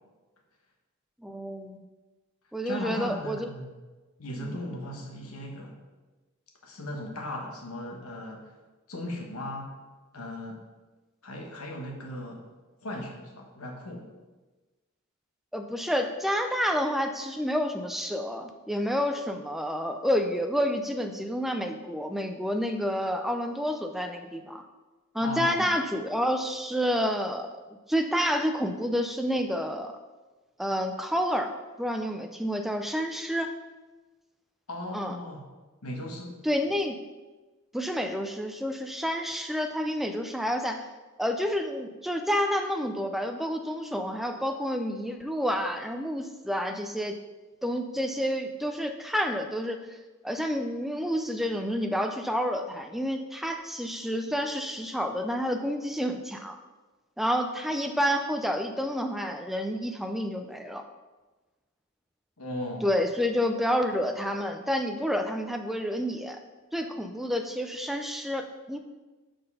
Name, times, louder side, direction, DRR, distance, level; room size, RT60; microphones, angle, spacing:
voice 1, 1.2-1.8 2.5-3.5 4.4-4.6 15.5-24.6 25.1-27.6 27.9-30.0 30.6-31.5 31.8-33.5 34.9-35.2 36.4-37.0 37.7-40.9 41.2-47.2 47.6-49.9 50.2-56.6 57.2-60.8 62.8-66.4 66.7-68.8, equal, ahead, 5 dB, 0.3 m, -29 dB
voice 2, 2.6-3.7 4.2-5.8 6.6-8.5 8.9-9.7 10.1-10.6 11.2-12.4 12.8-14.1 25.2-25.7 34.7-35.4 35.8-36.4 62.4-62.9, left 1 dB, 85° left, 1 dB, 1.2 m, -37 dB
5.2 x 4.4 x 5.4 m, 1.2 s
head